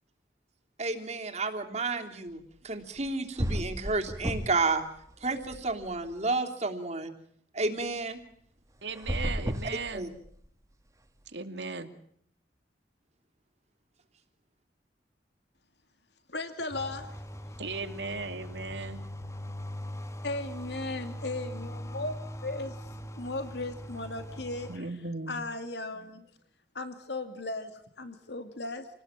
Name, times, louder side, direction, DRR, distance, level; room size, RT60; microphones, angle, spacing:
voice 1, 0.8-4.8 5.2-7.1 7.5-8.2 9.9-10.1, right 3 dB, 40° right, 4 dB, 3.1 m, -31 dB
sound 1, 3.0-3.1 3.4-4.7 5.0-6.1 8.9-10.5, equal, 20° right, 2.1 m, -33 dB
voice 2, 8.8-10.1 11.3-11.9 17.6-19.0 24.7-25.4, right 3 dB, 80° right, 8 dB, 2.6 m, -37 dB
voice 3, 16.3-17.1 20.2-22.1 22.4-22.7 23.1-24.8 25.3-26.3 26.7-28.9, left 2 dB, 75° left, 9 dB, 2.5 m, -36 dB
sound 2, 16.7-24.8, equal, 15° left, 1.5 m, -41 dB
28.5 x 19.5 x 8.9 m, 0.66 s
head